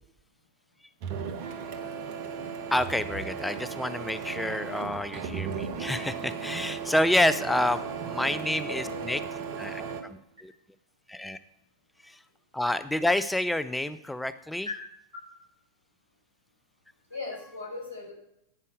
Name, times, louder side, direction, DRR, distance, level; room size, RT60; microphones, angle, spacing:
Printer, 1.0-10.0, right 6 dB, 50° right, 0.9 m, -36 dB
voice 1, 2.7-9.2 9.6-10.5 11.1-11.4 12.0-12.2 12.5-14.7, left 1 dB, 5° left, 12 dB, 0.3 m, -28 dB
voice 2, 8.6-9.1 14.6-14.7 17.1-18.1, left 3 dB, 85° right, -3 dB, 4.4 m, -38 dB
9.5 x 5.4 x 6.2 m, 0.80 s
figure-of-eight pair, 90°, 0 cm